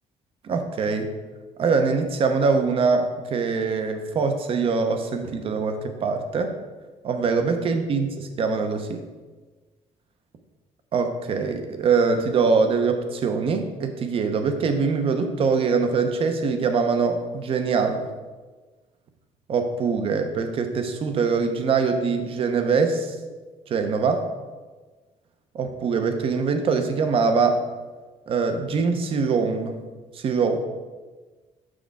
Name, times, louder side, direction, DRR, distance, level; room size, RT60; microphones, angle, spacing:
voice 1, 0.4-1.1 1.6-6.5 7.0-9.1 10.9-18.1 19.5-23.2 23.7-24.2 25.5-27.6 28.3-29.8 30.1-30.6, right 5 dB, 45° right, 7 dB, 0.7 m, -23 dB
6.3 x 6.2 x 3.5 m, 1.3 s
cardioid pair, 150°, 13 cm